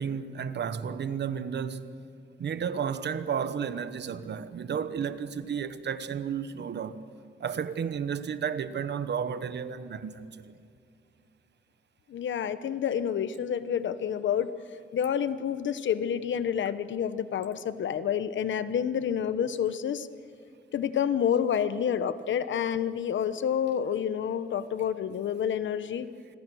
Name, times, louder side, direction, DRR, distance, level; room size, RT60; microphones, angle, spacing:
voice 1, 0.0-1.9 2.4-7.1 7.4-10.3, right 7 dB, 65° right, 1.1 m, -32 dB
voice 2, 12.1-14.5 14.9-20.1 20.7-26.1, left 8 dB, 85° left, 1.0 m, -28 dB
28.0 x 21.5 x 6.3 m
wide cardioid pair, 130°, 19 cm